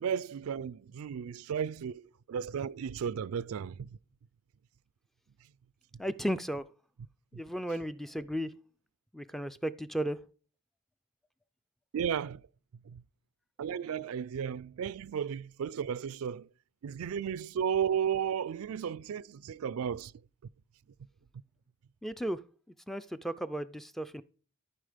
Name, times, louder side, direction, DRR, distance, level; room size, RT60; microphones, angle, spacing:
voice 1, 0.0-4.0 7.3-7.4 11.9-12.4 12.9-13.0 13.6-16.5 16.8-20.1, right 8 dB, 70° right, 0.4 m, -34 dB
voice 2, 6.0-6.7 7.3-8.5 9.1-10.2 22.0-22.4 22.9-24.2, equal, ahead, 0.3 m, -34 dB
14.0 x 4.7 x 5.0 m
head